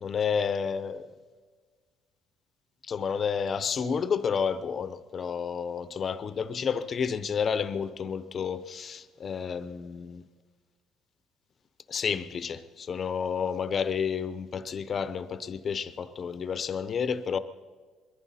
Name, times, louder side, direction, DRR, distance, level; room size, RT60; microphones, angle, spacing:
voice 1, 0.0-1.1 2.8-10.2 11.9-17.4, left 6 dB, 35° left, 0.7 m, -30 dB
22.0 x 15.0 x 4.2 m
cardioid pair, 150°, 0 cm